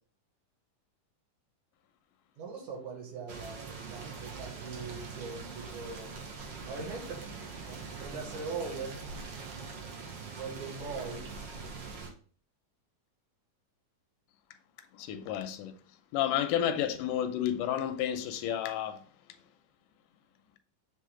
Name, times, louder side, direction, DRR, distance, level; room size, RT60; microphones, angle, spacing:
voice 1, 2.4-6.1 6.7-7.3 7.6-9.1 10.3-11.3, right 4 dB, 70° right, 2.8 m, -41 dB
sound 1, 3.3-12.1, right 4 dB, 85° right, 0.9 m, -43 dB
voice 2, 14.9-15.7 16.1-19.0, left 10 dB, 85° left, 2.1 m, -31 dB
7.5 x 3.6 x 3.7 m
omnidirectional pair, 3.7 m